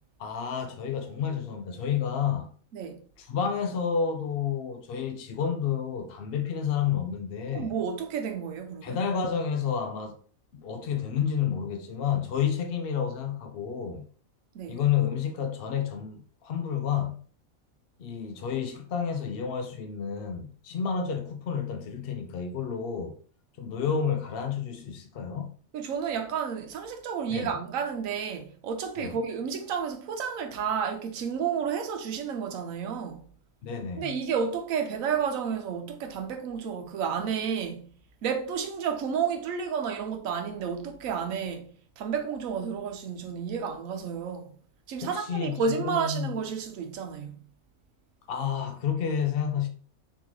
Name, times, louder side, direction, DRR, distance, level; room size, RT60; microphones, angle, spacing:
voice 1, 0.2-2.5 3.2-7.7 8.8-10.2 10.5-14.1 14.7-17.2 18.0-23.2 23.6-25.6 27.3-27.5 29.0-29.1 33.6-34.2 45.0-46.3 48.3-49.7, left 7 dB, 65° left, 0.6 m, -30 dB
voice 2, 7.5-9.0 14.5-14.8 25.7-33.3 33.9-37.9 38.2-44.5 44.9-47.4, right 6 dB, 75° right, 1.1 m, -31 dB
3.7 x 3.0 x 3.8 m
omnidirectional pair, 1.5 m